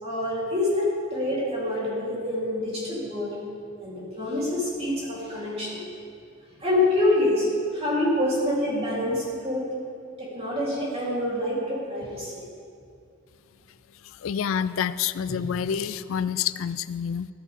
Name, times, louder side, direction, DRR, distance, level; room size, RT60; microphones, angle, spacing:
voice 1, 0.0-3.4 3.8-5.8 6.6-7.5 7.7-9.7 10.2-12.4 15.3-15.5, left 1 dB, 30° right, -6 dB, 3.8 m, -26 dB
voice 2, 14.2-17.3, left 8 dB, 75° left, 15 dB, 0.4 m, -28 dB
14.5 x 13.5 x 3.7 m, 2.5 s
head